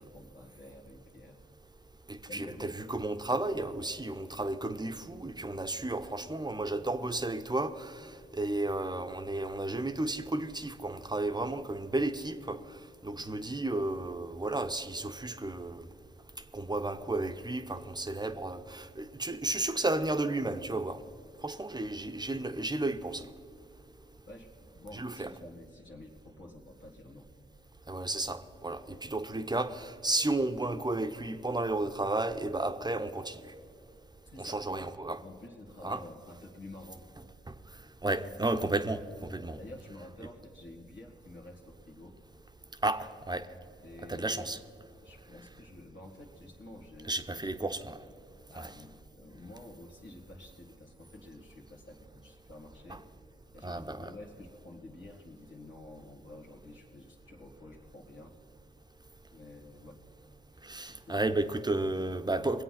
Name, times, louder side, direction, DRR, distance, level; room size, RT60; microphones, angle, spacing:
voice 1, 0.0-1.4 2.2-2.8 13.1-13.4 24.3-27.3 34.2-34.9 35.2-37.1 39.6-42.2 43.8-44.6 45.0-47.5 48.5-53.1 53.5-58.3 59.3-60.0 60.5-61.3 61.6-61.9, left 1 dB, 90° left, -2 dB, 2.0 m, -50 dB
voice 2, 2.1-12.6 13.0-15.9 16.5-21.0 21.4-23.3 24.9-25.3 27.9-33.4 34.4-35.2 35.8-36.0 38.0-39.6 42.8-43.5 44.1-44.6 47.1-48.0 48.6-48.7 52.9-53.0 53.6-54.1 60.6-62.6, right 2 dB, 20° right, 9 dB, 0.9 m, -33 dB
20.5 x 8.2 x 5.8 m, 2.3 s
supercardioid pair, 40°, 19 cm